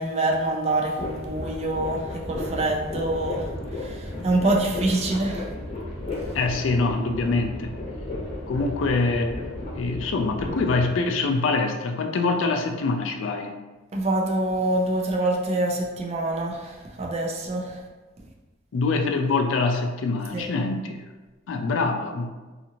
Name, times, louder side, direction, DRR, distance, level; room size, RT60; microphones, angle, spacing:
voice 1, 0.0-5.5 13.9-17.8 18.2-18.3 20.3-20.5, right 2 dB, 35° right, 0 dB, 0.4 m, -26 dB
sound 1, 1.0-10.8, left 2 dB, 35° left, 0.8 m, -34 dB
voice 2, 6.3-7.8 8.5-9.4 9.7-13.6 18.7-21.0 21.5-22.3, left 3 dB, 80° left, 4 dB, 0.4 m, -24 dB
2.6 x 2.5 x 2.8 m, 1.2 s
head